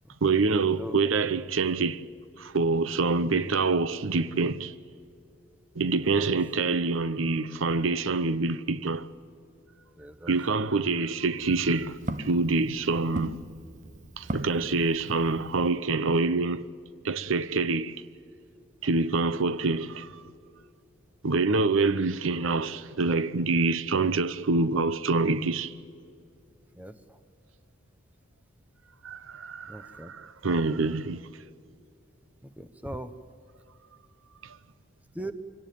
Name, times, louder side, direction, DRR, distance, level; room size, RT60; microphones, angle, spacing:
voice 1, 0.2-2.1 2.4-4.7 5.7-9.1 10.3-13.4 14.2-16.7 17.0-18.0 18.8-20.2 21.2-25.7 29.0-31.2 34.4-34.6, right 3 dB, 80° right, 0.8 m, -26 dB
voice 2, 6.0-6.3 10.0-10.3 26.8-27.2 29.7-30.1 32.6-33.1 35.1-35.3, right 1 dB, 5° right, 1.0 m, -39 dB
Walk footsteps, 11.2-15.8, right 1 dB, 35° right, 0.8 m, -39 dB
25.0 x 17.5 x 9.3 m
head